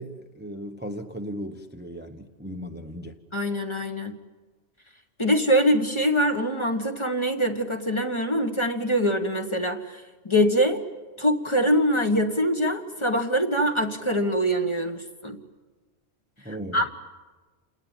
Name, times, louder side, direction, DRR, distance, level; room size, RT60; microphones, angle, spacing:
voice 1, 0.0-3.2 16.4-16.9, equal, 10° right, 5 dB, 1.0 m, -37 dB
voice 2, 3.3-4.1 5.2-10.8 11.2-15.4 16.7-16.9, equal, 25° left, 5 dB, 1.6 m, -24 dB
28.5 x 19.5 x 9.0 m, 1.3 s
omnidirectional pair, 1.2 m